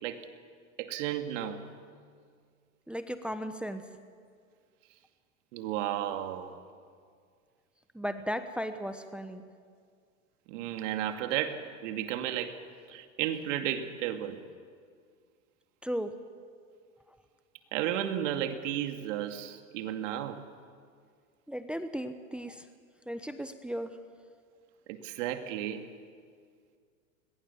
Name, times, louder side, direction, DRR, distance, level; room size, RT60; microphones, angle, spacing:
voice 1, 0.8-1.6 5.5-6.5 10.5-12.5 12.9-14.4 17.7-20.4 24.9-25.8, right 11 dB, 60° right, 7 dB, 2.4 m, -33 dB
voice 2, 2.9-3.8 7.9-9.4 15.8-16.1 21.5-22.6 23.1-23.9, equal, ahead, 9 dB, 1.0 m, -36 dB
29.5 x 21.5 x 7.1 m, 2.1 s
hypercardioid pair, 115°, 42 cm